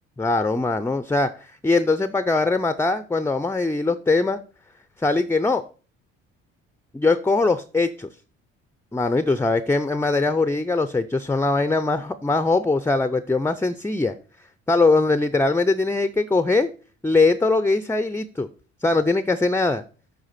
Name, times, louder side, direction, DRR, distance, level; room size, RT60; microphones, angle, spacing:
voice 1, 0.2-4.4 5.0-5.6 6.9-8.1 8.9-14.2 14.7-16.7 17.0-18.5 18.8-19.8, left 3 dB, 5° left, 0.5 m, -21 dB
8.0 x 4.8 x 5.7 m
supercardioid pair, 65°, 32 cm